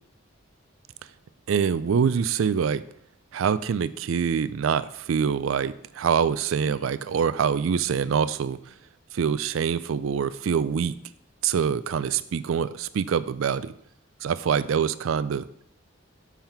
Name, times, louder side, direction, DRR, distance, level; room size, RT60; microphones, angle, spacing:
voice 1, 1.5-2.8 3.3-8.7 9.1-11.0 11.4-13.7 14.2-15.5, right 7 dB, 85° right, 15 dB, 0.4 m, -25 dB
7.1 x 5.7 x 4.5 m, 0.68 s
head